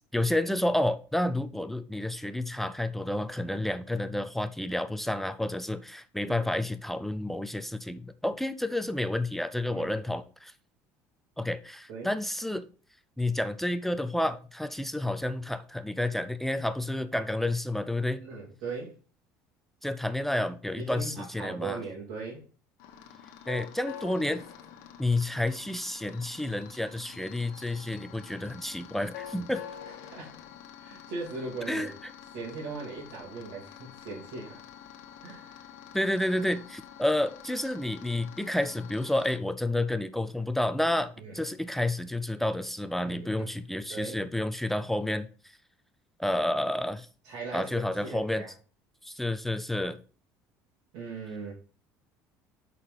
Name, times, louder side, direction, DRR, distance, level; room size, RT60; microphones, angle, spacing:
voice 1, 0.1-10.5 11.4-12.7 13.2-18.2 19.8-21.8 23.5-24.4 25.0-29.6 31.7-31.9 35.9-45.3 46.2-47.1 47.5-48.4 49.0-50.0, left 1 dB, 5° left, 11 dB, 0.4 m, -30 dB
voice 2, 18.2-19.0 20.7-22.5 29.8-30.4 30.8-31.9 32.3-34.6 35.2-35.7 41.2-41.4 43.1-43.5 43.9-44.2 47.2-48.5 50.9-51.5, right 4 dB, 65° right, -6 dB, 2.6 m, -39 dB
sound 1, 22.8-39.4, left 9 dB, 90° left, 1.2 m, -47 dB
6.5 x 4.1 x 5.5 m, 0.38 s
cardioid pair, 135°, 7 cm